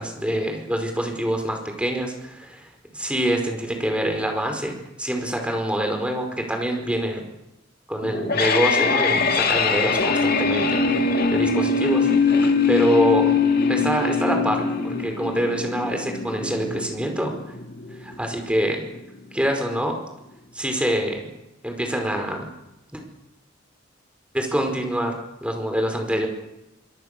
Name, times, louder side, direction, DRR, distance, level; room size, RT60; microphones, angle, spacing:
voice 1, 0.0-7.2 7.9-13.3 13.7-17.4 17.9-18.8 19.3-20.0 20.5-21.3 21.6-22.5 22.9-23.0 24.3-26.3, equal, 5° right, 4 dB, 4.9 m, -25 dB
sound 1, 8.0-19.0, left 4 dB, 50° left, 2.4 m, -22 dB
25.0 x 24.5 x 6.8 m, 0.88 s
head